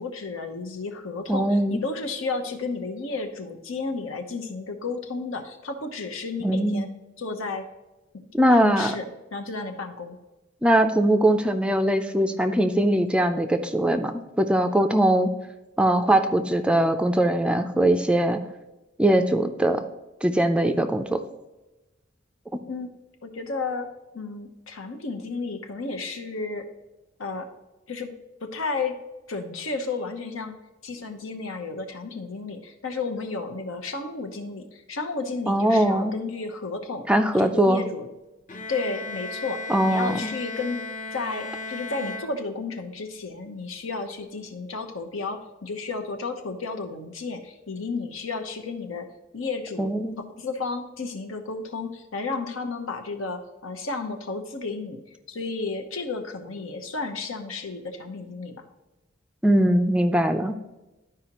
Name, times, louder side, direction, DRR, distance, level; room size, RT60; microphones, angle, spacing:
voice 1, 0.0-6.9 7.2-7.7 8.1-10.2 22.7-22.9 23.2-23.9 24.1-26.7 27.2-27.5 27.9-28.1 28.4-29.0 29.3-30.6 30.8-37.1 37.4-38.1 38.7-40.8 41.1-49.1 49.3-49.9 50.4-55.0 55.3-58.5, left 3 dB, 80° left, 5 dB, 1.0 m, -32 dB
voice 2, 1.3-1.8 6.4-6.9 8.4-8.9 10.6-15.3 15.8-18.4 19.0-19.8 20.2-21.2 35.5-36.1 37.1-37.8 39.7-40.2 49.8-50.2 59.4-60.5, right 1 dB, 5° right, 7 dB, 0.4 m, -21 dB
Bowed string instrument, 38.5-42.9, left 3 dB, 40° left, 0.7 m, -36 dB
12.0 x 4.9 x 3.0 m, 1.1 s
head